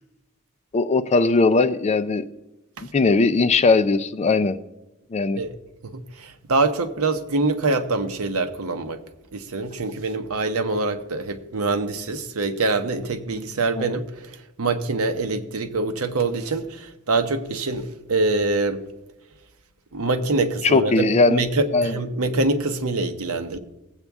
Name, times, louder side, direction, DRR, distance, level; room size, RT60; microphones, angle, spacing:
voice 1, 0.7-2.2 2.9-4.6 5.1-5.4 13.8-13.9 20.6-21.4 21.7-22.0, left 3 dB, 30° left, 0.4 m, -19 dB
voice 2, 5.8-9.0 9.3-14.1 14.6-18.8 19.9-23.6, right 3 dB, 75° right, 0.9 m, -24 dB
18.5 x 8.1 x 3.6 m
head